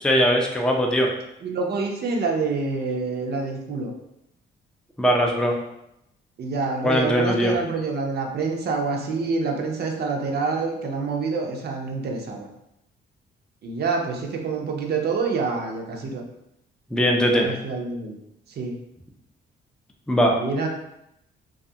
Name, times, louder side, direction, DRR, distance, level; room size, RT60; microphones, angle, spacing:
voice 1, 0.0-1.1 5.0-5.5 6.8-7.6 16.9-17.5 20.1-20.4, equal, 5° left, 0 dB, 0.4 m, -20 dB
voice 2, 1.4-3.9 6.4-12.5 13.6-16.2 17.3-18.2 18.6-18.7 20.4-20.7, right 4 dB, 55° right, 1 dB, 0.5 m, -27 dB
2.3 x 2.3 x 2.7 m, 0.82 s
cardioid pair, 90°, 20 cm